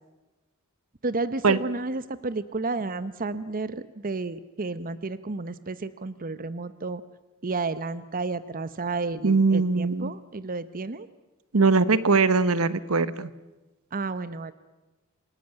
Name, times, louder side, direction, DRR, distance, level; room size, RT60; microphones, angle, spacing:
voice 1, 1.0-7.0 7.4-11.1 13.9-14.5, right 3 dB, 40° right, 14 dB, 0.8 m, -31 dB
voice 2, 9.2-10.1 11.5-13.3, right 4 dB, 70° right, 16 dB, 1.1 m, -21 dB
28.5 x 18.5 x 9.1 m, 1.1 s
head